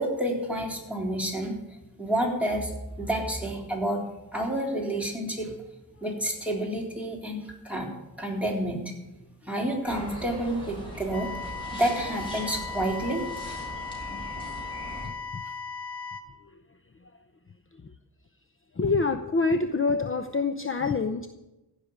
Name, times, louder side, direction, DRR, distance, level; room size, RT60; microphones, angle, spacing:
voice 1, 0.0-2.7 3.0-4.0 4.3-5.5 6.0-7.9 8.2-8.9 9.5-13.5, right 1 dB, 5° right, -2 dB, 3.8 m, -29 dB
sound 1, 9.8-15.1, right 1 dB, 15° left, 5.3 m, -40 dB
sound 2, 11.1-16.2, left 5 dB, 85° left, 1.7 m, -37 dB
voice 2, 15.0-15.4 16.4-16.6 17.0-17.1 17.7-17.9 18.7-21.3, left 4 dB, 35° left, 9 dB, 0.7 m, -27 dB
15.5 x 6.6 x 9.5 m, 0.99 s
wide cardioid pair, 85°, 38 cm